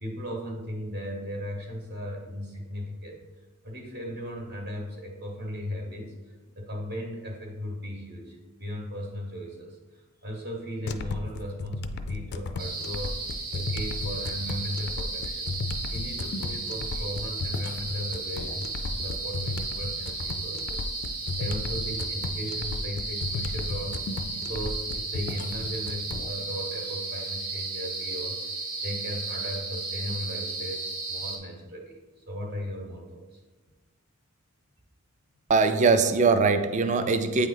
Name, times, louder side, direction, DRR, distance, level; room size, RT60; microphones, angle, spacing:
voice 1, 0.0-3.2 3.6-13.2 13.5-15.5 15.9-24.0 24.3-28.4 28.8-33.4, equal, 50° right, -1 dB, 1.0 m, -37 dB
sound 1, 10.9-26.3, left 3 dB, 50° left, 0.3 m, -35 dB
sound 2, 12.6-31.4, right 3 dB, 80° right, 1.2 m, -34 dB
voice 2, 35.5-37.5, right 4 dB, 35° right, 9 dB, 0.3 m, -21 dB
8.5 x 3.1 x 3.8 m, 1.2 s
head